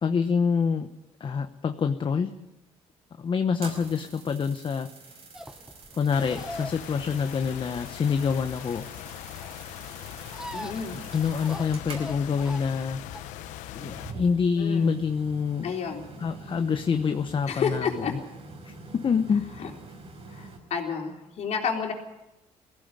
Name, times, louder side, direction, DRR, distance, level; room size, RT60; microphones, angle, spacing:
voice 1, 0.0-0.9 1.2-2.3 3.2-5.1 5.9-8.9 10.8-13.0 13.7-15.7 16.2-18.2 18.6-19.5, left 6 dB, 40° left, 8 dB, 1.1 m, -26 dB
sound 1, 3.6-20.6, right 3 dB, 55° right, 5.4 m, -46 dB
sound 2, 5.3-13.5, equal, 5° right, 1.3 m, -42 dB
sound 3, 6.1-14.1, left 13 dB, 85° left, 0.9 m, -41 dB
voice 2, 10.5-11.0 14.6-15.0 15.6-16.1 17.5-18.1 19.6-19.7 20.3-21.9, left 6 dB, 60° left, 2 dB, 3.8 m, -30 dB
18.0 x 15.5 x 9.8 m, 0.95 s
supercardioid pair, 75°, 13 cm